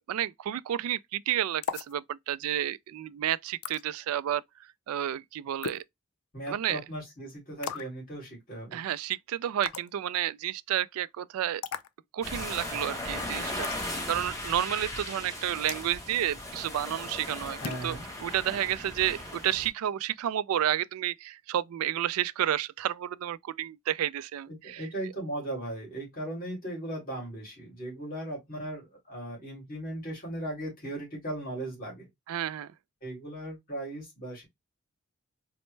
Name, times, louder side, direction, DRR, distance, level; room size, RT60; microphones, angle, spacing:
voice 1, 0.1-4.4 4.9-5.8 6.5-6.8 8.7-11.6 12.1-18.0 18.2-24.8 32.3-32.7, right 11 dB, 85° right, 0.3 m, -31 dB
sound 1, 1.6-1.9 3.6-3.8 5.6-5.9 7.6-8.0 9.6-9.9 11.6-11.9 13.6-13.8 15.7-15.9 17.6-17.9, left 7 dB, 90° left, 0.4 m, -36 dB
voice 2, 6.3-8.8 17.6-18.0 24.5-32.1 33.0-34.4, right 1 dB, 40° left, 2.5 m, -37 dB
sound 2, 12.2-19.7, left 1 dB, 15° left, 0.9 m, -37 dB
4.2 x 2.0 x 3.1 m
head